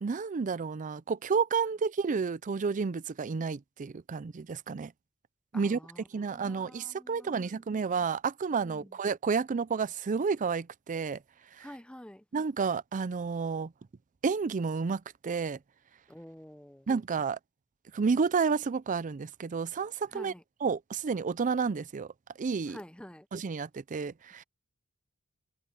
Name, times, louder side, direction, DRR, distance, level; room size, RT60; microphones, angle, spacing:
voice 1, 0.0-4.9 5.5-5.8 6.1-11.2 11.6-11.7 12.3-13.7 14.2-15.6 16.9-17.4 17.9-20.3 20.6-22.1 22.4-22.8 23.3-24.4, right 5 dB, 35° right, 0.4 m, -30 dB
voice 2, 5.5-7.6 8.6-8.9 11.6-12.2 16.1-16.9 20.1-20.4 22.7-23.3, left 1 dB, 5° left, 0.7 m, -49 dB
head